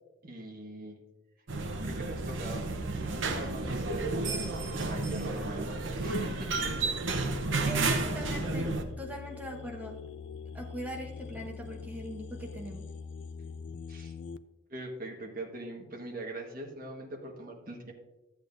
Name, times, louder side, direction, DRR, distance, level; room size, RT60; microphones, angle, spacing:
voice 1, 0.2-1.0 1.8-2.7 3.2-6.7 13.9-14.1 14.7-17.9, right 1 dB, 45° right, 0 dB, 1.5 m, -41 dB
sound 1, 1.5-8.8, right 3 dB, 70° right, 0.8 m, -32 dB
sound 2, 7.1-14.4, left 5 dB, 60° left, 0.3 m, -43 dB
voice 2, 7.7-10.0 10.5-12.8, equal, 10° right, 1 dB, 1.0 m, -41 dB
13.0 x 8.1 x 2.6 m, 1.1 s
head